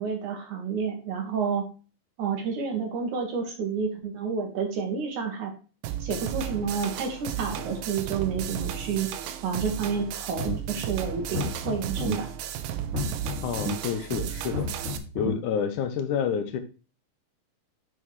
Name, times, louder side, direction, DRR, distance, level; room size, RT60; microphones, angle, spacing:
voice 1, 0.0-1.7 2.2-5.5 6.0-9.1 9.4-12.3, right 6 dB, 65° right, 2 dB, 2.8 m, -30 dB
sound 1, 5.8-15.0, right 10 dB, 85° right, 2.5 m, -34 dB
sound 2, 10.3-10.8 11.2-12.1 12.8-13.7 14.4-15.3, left 2 dB, 40° right, 2.7 m, -32 dB
voice 2, 13.4-14.7 15.2-16.6, left 7 dB, 70° left, 9 dB, 2.1 m, -28 dB
7.9 x 6.5 x 3.1 m, 0.34 s
omnidirectional pair, 4.1 m